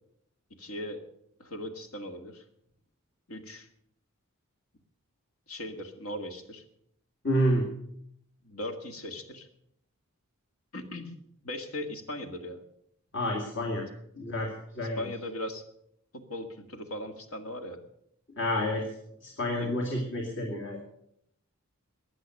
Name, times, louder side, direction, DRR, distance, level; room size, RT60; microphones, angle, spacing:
voice 1, 0.6-1.0 1.4-2.4 3.3-3.7 5.5-6.6 8.4-9.5 10.7-11.1 11.4-12.6 15.0-15.6 16.1-17.8 19.6-19.8, left 1 dB, 85° left, 6 dB, 1.9 m, -38 dB
voice 2, 7.2-7.6 13.1-13.9 14.2-15.1 18.4-18.8 19.2-20.8, equal, 60° left, 0 dB, 2.5 m, -29 dB
16.0 x 10.0 x 6.4 m, 0.73 s
head